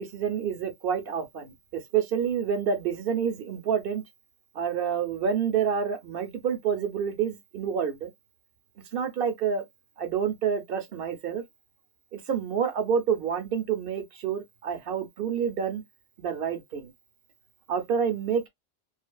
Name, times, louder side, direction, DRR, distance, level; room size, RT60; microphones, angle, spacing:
voice 1, 0.0-4.0 4.5-8.1 8.9-9.6 10.0-11.4 12.1-15.8 16.2-16.9 17.7-18.5, right 7 dB, 60° right, 0.9 m, -28 dB
2.8 x 2.5 x 2.2 m
omnidirectional pair, 1.1 m